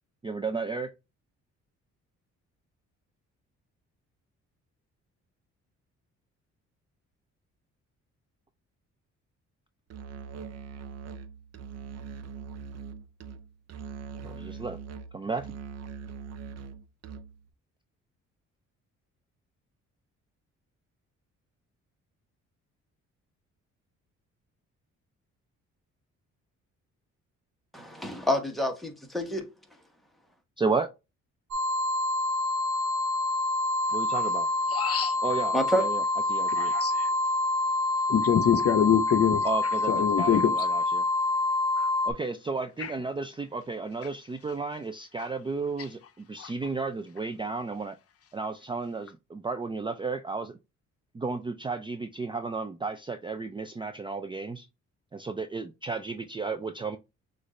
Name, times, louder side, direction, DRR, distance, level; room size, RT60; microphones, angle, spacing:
voice 1, 0.2-0.9 14.2-14.8 15.1-15.5 30.6-30.9 33.9-34.5 35.2-36.0 36.3-36.7 39.4-41.0 42.0-48.0 48.3-50.6 51.1-54.7 55.1-57.0, right 4 dB, 15° right, 0.4 m, -33 dB
Musical instrument, 9.9-17.5, right 6 dB, 55° right, 0.7 m, -42 dB
voice 2, 27.7-29.5 35.5-35.8, equal, ahead, 1.2 m, -28 dB
sound 1, 31.5-42.1, left 2 dB, 75° right, 1.1 m, -27 dB
voice 3, 34.7-35.2 36.5-37.1 38.1-39.5 39.9-40.5 41.8-41.9 42.8-42.9 46.4-46.5, left 9 dB, 50° left, 0.7 m, -25 dB
6.2 x 2.6 x 3.1 m
cardioid pair, 90°, 30 cm